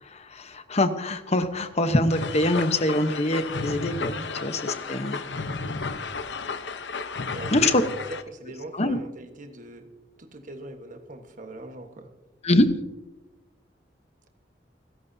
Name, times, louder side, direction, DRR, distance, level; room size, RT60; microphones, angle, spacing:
voice 1, 0.0-5.2 7.5-7.8 8.7-9.0 12.4-12.7, left 1 dB, 40° left, 9 dB, 1.0 m, -24 dB
sound 1, 2.1-8.2, left 4 dB, 85° left, 0.9 m, -33 dB
voice 2, 7.3-9.9 10.2-12.1, right 1 dB, 45° right, 5 dB, 1.4 m, -41 dB
30.0 x 11.5 x 2.8 m, 1.0 s
head